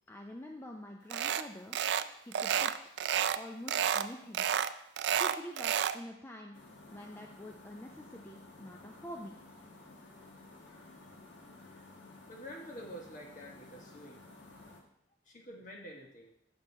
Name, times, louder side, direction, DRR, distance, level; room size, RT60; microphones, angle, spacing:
voice 1, 0.1-1.8 2.2-2.8 3.3-4.5 5.2-6.6 6.9-9.3, left 1 dB, 10° left, 2 dB, 0.4 m, -46 dB
sound 1, 1.1-1.4 1.7-2.1 2.3-3.4 3.7-4.1 4.3-6.0, right 9 dB, 65° right, 0.3 m, -30 dB
sound 2, 6.5-14.8, left 2 dB, 80° left, 1.4 m, -54 dB
voice 2, 12.3-14.2 15.2-16.3, equal, 45° left, 0 dB, 1.4 m, -48 dB
7.7 x 6.3 x 4.2 m, 0.76 s
head